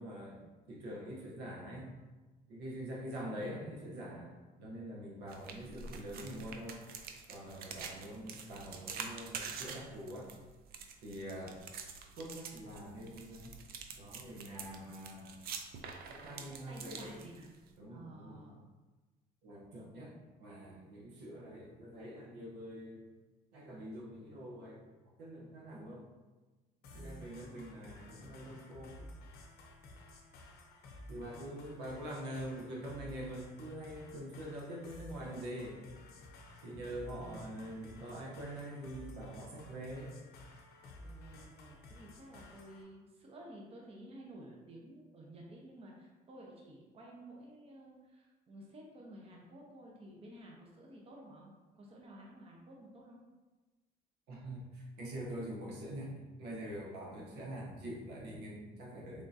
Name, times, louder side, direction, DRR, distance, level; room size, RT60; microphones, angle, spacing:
voice 1, 0.0-1.9 2.5-4.3 4.6-6.8 7.3-10.3 11.0-11.6 12.2-13.6 14.0-15.4 16.1-17.2 17.8-18.6 19.4-23.0 23.5-26.1 26.9-29.1 31.1-35.8 36.6-40.1 54.3-59.2, right 1 dB, 80° right, -3 dB, 0.9 m, -45 dB
sound 1, 5.3-17.7, right 6 dB, 65° right, 0.5 m, -47 dB
voice 2, 16.3-17.5 17.9-18.6 26.9-27.6 31.3-32.0 37.2-37.8 41.0-53.2, right 1 dB, 35° right, -2 dB, 0.8 m, -53 dB
sound 2, 26.8-42.8, left 1 dB, 70° left, 0.7 m, -53 dB
3.6 x 3.6 x 2.7 m, 1.2 s
cardioid pair, 110°, 17 cm